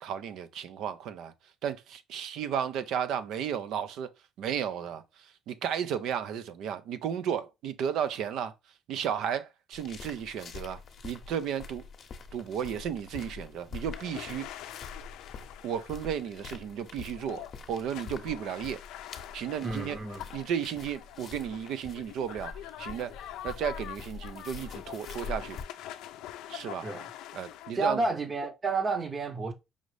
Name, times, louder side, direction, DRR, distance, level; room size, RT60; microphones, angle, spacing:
voice 1, 0.0-1.3 1.6-4.1 4.4-5.0 5.5-8.5 8.9-11.8 12.3-14.5 15.6-18.8 19.3-20.0 20.3-22.5 22.8-23.1 23.4-25.6 26.5-26.9 27.3-28.0, right 8 dB, 70° right, 0.5 m, -33 dB
sound 1, 9.7-25.6, left 5 dB, 50° left, 0.7 m, -45 dB
sound 2, 13.9-27.7, left 12 dB, 80° left, 0.4 m, -45 dB
voice 2, 19.6-20.3 26.8-27.1 27.7-29.5, right 3 dB, 30° right, 0.8 m, -30 dB
5.1 x 2.6 x 3.2 m
cardioid pair, 95°, 0 cm